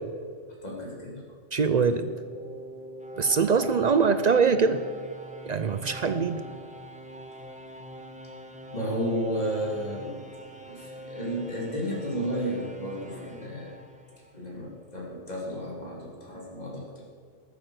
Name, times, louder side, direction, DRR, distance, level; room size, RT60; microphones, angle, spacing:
voice 1, 0.6-1.2 8.7-10.1 10.6-13.7 14.3-17.0, equal, 30° left, -4 dB, 2.9 m, -32 dB
sound 1, 1.5-14.6, right 1 dB, 5° right, 0.9 m, -44 dB
voice 2, 1.5-2.1 3.2-4.8 5.5-6.4, right 5 dB, 60° right, 10 dB, 0.4 m, -23 dB
19.5 x 7.1 x 6.4 m, 2.2 s
omnidirectional pair, 1.4 m